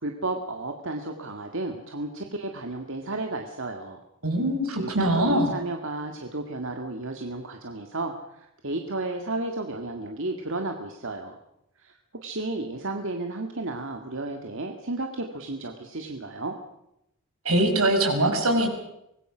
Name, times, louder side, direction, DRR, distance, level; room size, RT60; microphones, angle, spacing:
voice 1, 0.0-4.0 4.8-11.4 11.8-16.6, right 2 dB, 60° right, 4 dB, 2.0 m, -33 dB
voice 2, 4.2-5.5 17.4-18.7, right 1 dB, 80° right, 4 dB, 5.7 m, -22 dB
24.5 x 20.5 x 6.2 m, 0.83 s
head